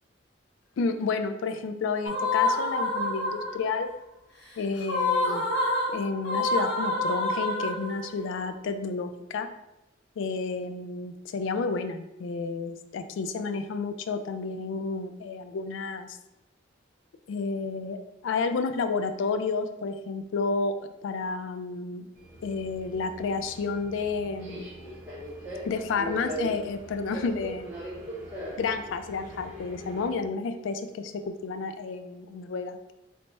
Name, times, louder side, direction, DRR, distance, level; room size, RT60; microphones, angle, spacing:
voice 1, 0.8-3.9 4.6-5.4 5.9-9.5 10.2-16.2 17.3-18.0 18.2-22.1 22.4-24.7 25.6-27.7 28.6-32.9, left 4 dB, 75° left, 9 dB, 0.3 m, -31 dB
sound 1, 2.1-3.7 4.8-8.2, left 2 dB, 55° left, 0.8 m, -27 dB
Subway metro underground, 22.2-30.1, right 1 dB, 10° right, 0.9 m, -40 dB
3.3 x 2.0 x 4.0 m, 0.91 s
head